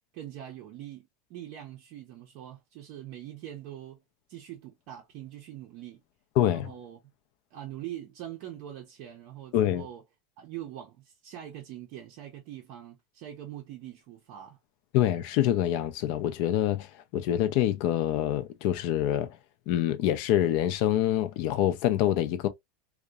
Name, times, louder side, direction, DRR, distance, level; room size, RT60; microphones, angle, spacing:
voice 1, 0.1-4.0 4.3-6.0 6.5-7.0 7.5-10.0 10.4-14.6, right 12 dB, 50° right, 0.5 m, -43 dB
voice 2, 6.4-6.7 9.5-9.9 14.9-16.9 17.1-19.3 19.7-22.5, left 12 dB, 50° left, 0.4 m, -26 dB
2.7 x 2.1 x 2.2 m
supercardioid pair, 160°, 0 cm